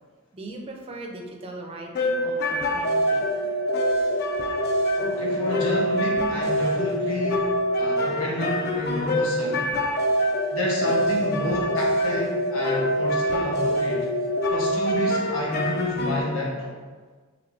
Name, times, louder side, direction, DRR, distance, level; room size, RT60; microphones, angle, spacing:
voice 1, 0.3-3.5, right 1 dB, 25° right, 1 dB, 0.4 m, -39 dB
sound 1, 1.9-16.2, equal, 50° left, 0.4 m, -25 dB
voice 2, 5.0-7.4 7.8-9.6 10.5-14.1 14.5-16.7, left 1 dB, 75° left, -4 dB, 0.9 m, -29 dB
3.6 x 3.4 x 2.3 m, 1.5 s
head